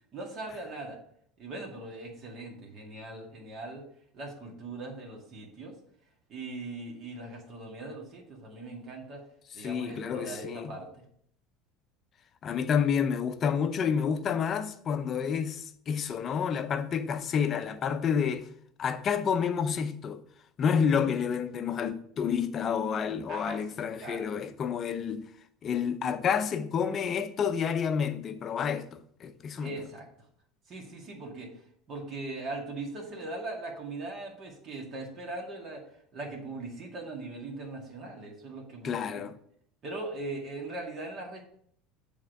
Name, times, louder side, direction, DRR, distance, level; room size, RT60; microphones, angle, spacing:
voice 1, 0.1-1.0 1.4-3.8 4.1-5.7 6.3-9.2 9.5-11.0 23.3-24.3 29.6-30.1 30.7-31.5 31.9-35.8 36.1-39.3 39.8-41.4, right 2 dB, 40° right, 1.9 m, -40 dB
voice 2, 9.6-10.8 12.4-18.5 18.8-20.2 20.6-25.3 25.6-29.8 38.8-39.3, left 7 dB, 35° left, 0.5 m, -29 dB
7.4 x 3.6 x 4.7 m
supercardioid pair, 125°, 0 cm